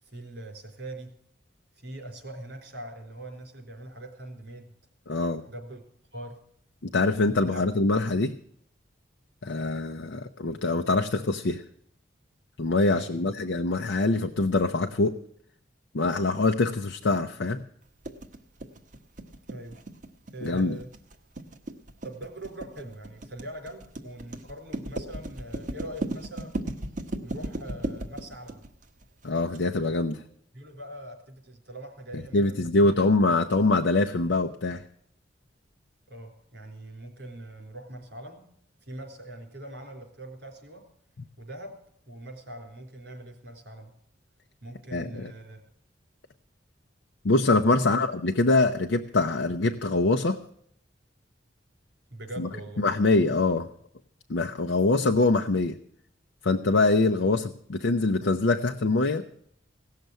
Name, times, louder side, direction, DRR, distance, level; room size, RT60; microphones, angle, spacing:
voice 1, 0.0-1.1 1.8-4.7 5.4-5.8 6.1-6.4 7.5-7.6 10.4-10.6 12.9-13.2 19.3-19.8 20.3-20.9 22.0-26.7 27.2-28.6 30.5-32.6 33.3-33.4 36.1-38.4 38.8-40.8 41.4-41.7 42.1-43.9 44.6-45.6 47.7-48.1 52.1-52.8, right 1 dB, 60° right, 3 dB, 4.0 m, -42 dB
voice 2, 5.1-5.4 6.8-8.3 9.4-11.6 12.6-15.2 15.9-17.6 20.4-20.8 29.2-30.2 32.3-34.8 44.9-45.3 47.2-50.4 52.4-52.5 52.8-53.7 54.3-55.8 56.4-59.2, left 2 dB, 80° left, 4 dB, 0.7 m, -24 dB
sound 1, 18.0-29.6, right 1 dB, 45° right, 1.3 m, -36 dB
17.0 x 6.7 x 9.1 m, 0.67 s
head